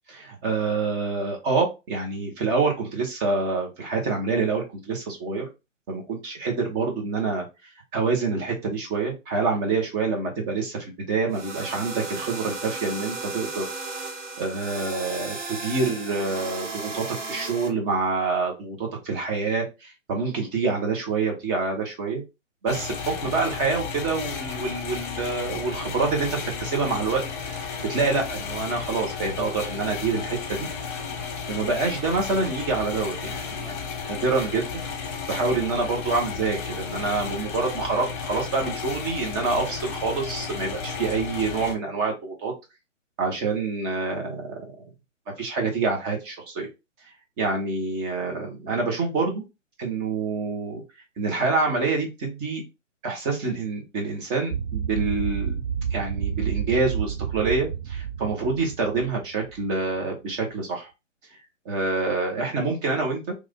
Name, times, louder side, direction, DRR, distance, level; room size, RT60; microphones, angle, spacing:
voice 1, 0.1-5.4 5.9-7.4 7.9-13.6 14.4-22.2 22.6-30.7 31.5-34.8 35.3-42.5 43.2-44.6 45.4-46.7 47.4-49.4 49.8-50.8 51.2-52.6 53.0-55.6 55.9-60.9 61.6-63.3, right 4 dB, 20° right, 1 dB, 1.0 m, -27 dB
sound 1, 11.3-17.7, right 3 dB, 65° right, 1.7 m, -35 dB
sound 2, 22.7-41.8, left 6 dB, 40° left, 1.1 m, -33 dB
sound 3, 54.5-59.6, right 8 dB, 50° right, 0.4 m, -29 dB
3.2 x 2.5 x 3.6 m, 0.26 s
hypercardioid pair, 145°, 38 cm